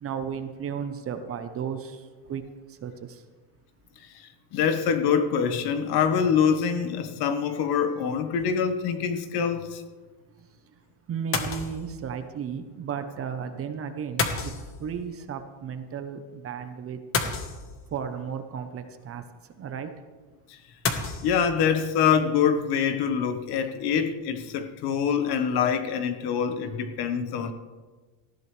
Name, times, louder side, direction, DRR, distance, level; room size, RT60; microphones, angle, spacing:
voice 1, 0.0-2.4 2.7-3.2 11.1-14.5 14.8-17.3 17.9-19.2 19.6-19.9, right 7 dB, 30° right, 8 dB, 0.9 m, -34 dB
voice 2, 4.5-9.8 20.5-20.6 21.2-27.5, left 7 dB, 55° left, 8 dB, 1.4 m, -25 dB
sound 1, 8.4-8.7 11.3-12.0 14.2-15.1 17.1-18.1 20.8-21.3, left 4 dB, 30° left, 1.4 m, -29 dB
19.0 x 14.5 x 3.4 m, 1.3 s
cardioid pair, 155°, 45 cm